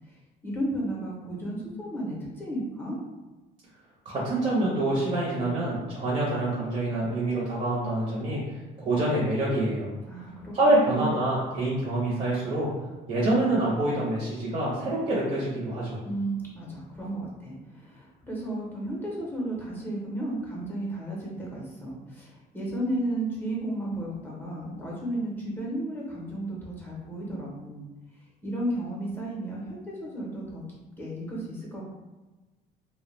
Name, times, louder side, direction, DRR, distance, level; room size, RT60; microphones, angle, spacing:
voice 1, 0.4-3.0 10.1-11.1 16.0-27.8 28.4-31.8, right 1 dB, 10° left, -4 dB, 0.6 m, -33 dB
voice 2, 4.0-8.4 8.8-9.9 10.5-12.7 13.1-16.0, right 1 dB, 40° right, -6 dB, 0.7 m, -26 dB
2.1 x 2.0 x 3.0 m, 1.2 s
cardioid pair, 110°, 17 cm